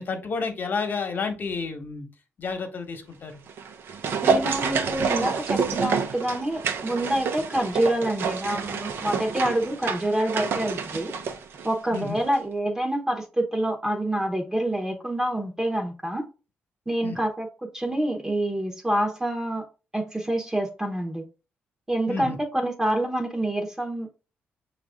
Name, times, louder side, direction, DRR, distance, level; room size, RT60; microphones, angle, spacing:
voice 1, 0.0-2.1 2.4-3.4 11.9-12.2 17.0-17.2 22.1-22.4, left 4 dB, 50° left, 6 dB, 1.1 m, -30 dB
sound 1, 3.5-12.1 12.3-12.4, right 5 dB, 70° right, 0.6 m, -28 dB
voice 2, 4.2-11.1 11.6-16.2 16.9-19.6 19.9-21.2 21.9-24.1, right 1 dB, 15° right, 1 dB, 0.9 m, -27 dB
6.2 x 2.5 x 3.5 m, 0.32 s
cardioid pair, 90°, 4 cm